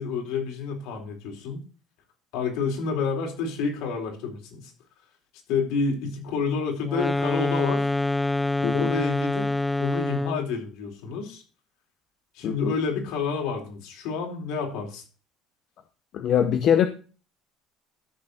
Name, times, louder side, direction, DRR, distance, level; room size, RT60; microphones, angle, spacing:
voice 1, 0.0-1.6 2.3-4.7 5.5-7.9 8.7-9.5 9.8-11.4 12.3-15.0, left 5 dB, 65° left, 3.9 m, -29 dB
sound 1, 6.9-10.5, left 2 dB, 5° left, 0.4 m, -26 dB
voice 2, 8.6-8.9 12.4-12.7 16.1-16.9, left 9 dB, 40° left, 0.8 m, -22 dB
13.5 x 6.8 x 4.0 m
cardioid pair, 180°, 0 cm